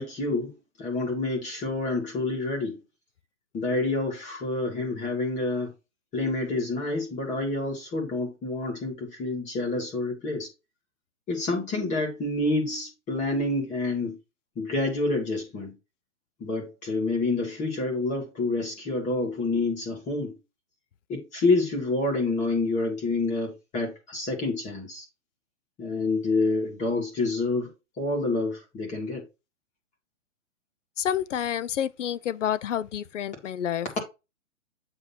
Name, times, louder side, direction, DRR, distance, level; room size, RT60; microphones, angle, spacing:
voice 1, 0.0-2.8 3.5-5.7 6.1-10.5 11.3-14.2 14.5-15.7 16.4-20.3 21.1-25.0 25.8-29.3, left 2 dB, 20° left, 1.8 m, -28 dB
voice 2, 31.0-33.9, left 10 dB, 70° left, 0.6 m, -29 dB
7.9 x 2.8 x 5.7 m
hypercardioid pair, 140°, 39 cm